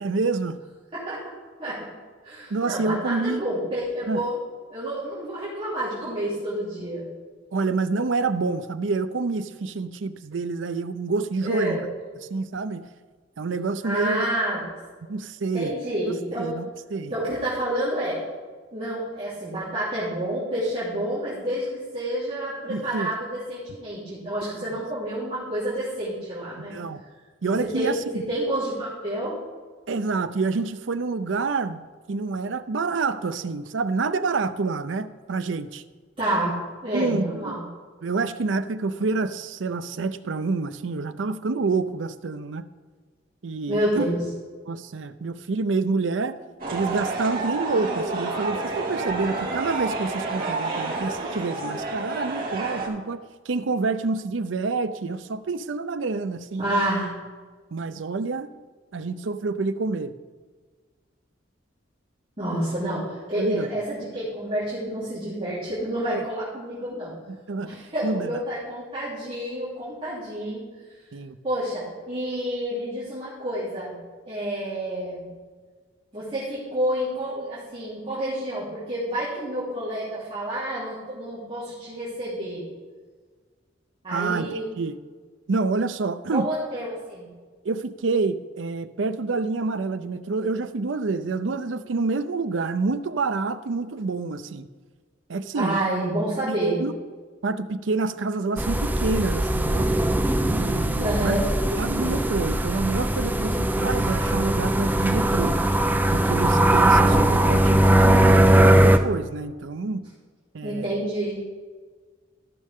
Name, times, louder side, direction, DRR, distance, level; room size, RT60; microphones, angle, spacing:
voice 1, 0.0-0.6 2.5-3.4 4.1-4.2 7.5-11.8 12.3-12.8 13.4-14.3 15.1-15.7 16.1-17.1 22.7-23.1 24.6-24.7 26.6-27.0 27.4-28.2 29.9-35.8 36.9-37.6 38.0-42.6 43.4-44.1 44.7-46.4 46.7-56.8 57.7-58.5 58.9-60.1 63.4-63.7 66.1-66.2 67.5-67.8 68.0-68.3 71.1-71.4 84.1-84.9 85.5-86.5 87.6-94.7 95.3-95.8 96.5-97.0 97.4-99.9 100.4-101.3 101.7-105.6 106.1-110.0 110.5-110.9, right 3 dB, 75° right, 11 dB, 0.6 m, -27 dB
voice 2, 2.2-4.4 4.7-7.0 11.4-11.8 13.8-14.8 15.5-16.5 17.1-18.2 18.7-26.7 27.6-29.4 36.2-36.6 36.8-37.6 43.7-44.2 56.6-57.1 62.4-67.1 67.6-70.6 71.4-74.0 74.2-75.3 76.1-82.7 84.0-84.7 86.3-87.3 95.5-96.8 101.0-101.5 110.6-111.4, right 1 dB, 30° right, -12 dB, 3.1 m, -29 dB
sound 1, 46.6-52.9, right 3 dB, 50° right, 2.2 m, -29 dB
sound 2, 98.6-109.0, right 1 dB, 10° right, 0.5 m, -20 dB
14.5 x 6.6 x 3.6 m, 1.5 s
head